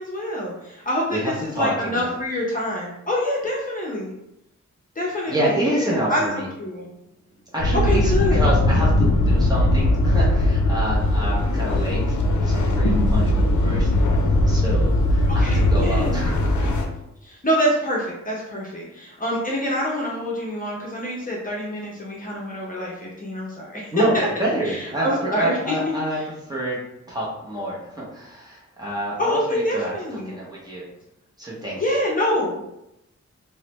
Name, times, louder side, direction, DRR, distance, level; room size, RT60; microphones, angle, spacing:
voice 1, 0.0-4.1 5.0-6.9 7.8-8.5 8.7-8.8 15.3-16.4 16.6-16.7 17.2-24.3 24.6-26.3 29.2-30.3 31.8-32.7, left 1 dB, 30° left, -4 dB, 0.6 m, -26 dB
voice 2, 1.1-2.1 5.3-6.5 7.5-14.1 14.5-16.7 23.9-26.8 27.1-29.9 30.3-30.8 31.4-31.8, right 1 dB, 15° right, -6 dB, 0.7 m, -28 dB
sound 1, 7.6-16.9, left 1 dB, 80° left, 0.5 m, -19 dB
3.0 x 2.1 x 3.0 m, 0.86 s
wide cardioid pair, 160°, 29 cm